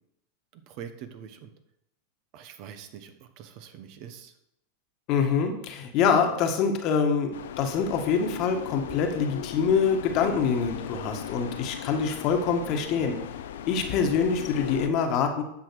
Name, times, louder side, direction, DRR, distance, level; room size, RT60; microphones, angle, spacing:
voice 1, 0.5-1.5 2.3-4.3, right 8 dB, 50° right, 9 dB, 1.1 m, -44 dB
voice 2, 5.1-7.3 7.6-13.2 13.7-15.4, left 6 dB, 45° left, 5 dB, 1.5 m, -25 dB
sound 1, 7.3-14.9, left 9 dB, 70° left, 0.6 m, -38 dB
9.9 x 6.2 x 4.7 m, 0.81 s
hypercardioid pair, 95°, 0 cm